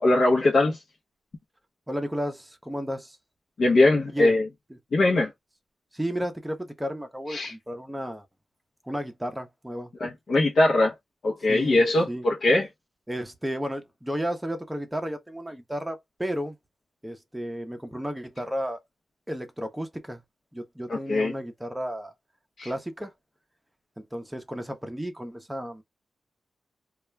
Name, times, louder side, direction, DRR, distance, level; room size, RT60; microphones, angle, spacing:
voice 1, 0.0-0.8 3.6-4.4 4.9-5.3 7.3-7.5 10.0-10.9 11.2-12.7 20.9-21.3 22.6-22.7, left 2 dB, 60° left, 0.8 m, -21 dB
voice 2, 1.9-3.2 4.1-4.3 5.9-8.2 8.8-9.9 11.4-12.2 13.1-16.6 17.0-18.8 19.3-20.2 20.5-22.1 22.6-23.1 24.0-25.8, equal, 10° right, 0.7 m, -33 dB
2.3 x 2.2 x 3.1 m
cardioid pair, 85°, 0 cm